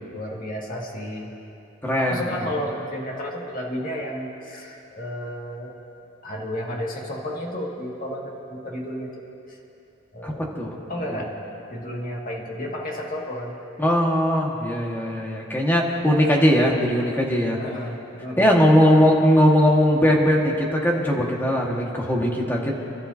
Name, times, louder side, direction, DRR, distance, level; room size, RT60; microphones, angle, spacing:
voice 1, 0.1-1.3 2.0-5.8 6.2-9.6 10.1-10.5 10.9-11.3 11.7-13.6 17.6-18.6, equal, 45° left, -2 dB, 2.1 m, -32 dB
voice 2, 1.8-2.2 10.2-10.7 13.8-17.6 18.4-22.7, equal, 10° left, -2 dB, 1.7 m, -19 dB
29.0 x 12.5 x 2.8 m, 2.8 s
head